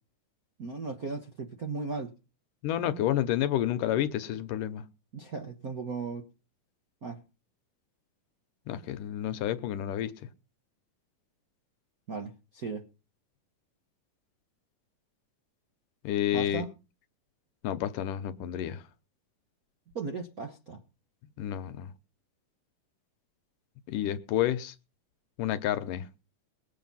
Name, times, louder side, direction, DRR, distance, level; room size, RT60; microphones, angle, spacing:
voice 1, 0.6-2.1 5.1-6.3 7.0-7.2 12.1-12.9 16.3-16.7 19.9-20.8, right 4 dB, 55° right, 0.9 m, -36 dB
voice 2, 2.6-4.8 8.7-10.2 16.0-16.7 17.6-18.8 21.4-21.9 23.9-24.7 25.4-26.1, left 11 dB, 75° left, 2.4 m, -30 dB
21.0 x 8.4 x 5.6 m
omnidirectional pair, 3.9 m